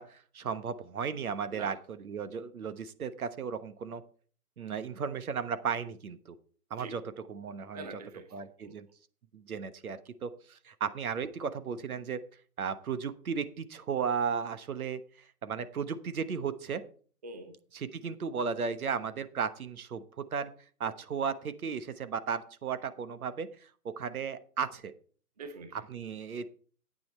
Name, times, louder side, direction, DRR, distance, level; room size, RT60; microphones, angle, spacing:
voice 1, 0.0-4.0 4.6-6.4 6.7-7.9 8.3-8.9 9.3-12.2 12.6-16.8 17.7-20.5 20.8-24.9 25.7-26.5, right 6 dB, 65° right, 12 dB, 1.2 m, -35 dB
voice 2, 7.7-8.8 17.2-17.6 25.4-25.8, right 3 dB, 25° right, 8 dB, 0.7 m, -45 dB
9.3 x 8.9 x 4.3 m, 0.42 s
hypercardioid pair, 165°, 46 cm